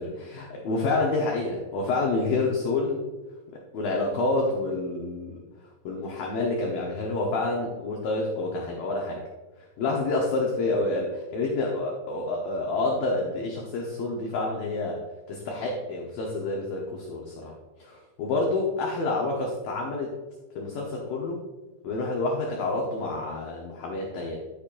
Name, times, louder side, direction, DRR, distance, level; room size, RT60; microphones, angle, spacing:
voice 1, 0.0-3.0 3.7-5.4 5.8-9.2 9.8-15.0 15.3-17.5 17.8-20.2 20.6-21.4 21.8-24.4, left 2 dB, 70° left, -1 dB, 2.3 m, -28 dB
13.5 x 7.1 x 2.6 m, 1.2 s
omnidirectional pair, 5.3 m